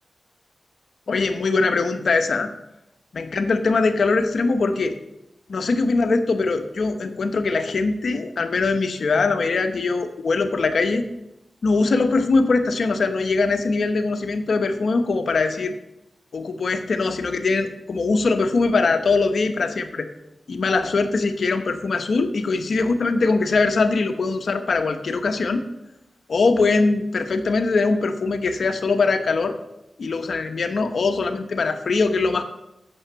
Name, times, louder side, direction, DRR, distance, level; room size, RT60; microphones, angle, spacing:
voice 1, 1.1-2.5 3.1-5.0 5.5-11.0 11.6-15.8 16.3-20.1 20.5-25.6 26.3-29.6 30.0-32.4, left 3 dB, 75° left, 8 dB, 0.9 m, -22 dB
8.8 x 7.1 x 5.6 m, 0.87 s
cardioid pair, 40°, 0 cm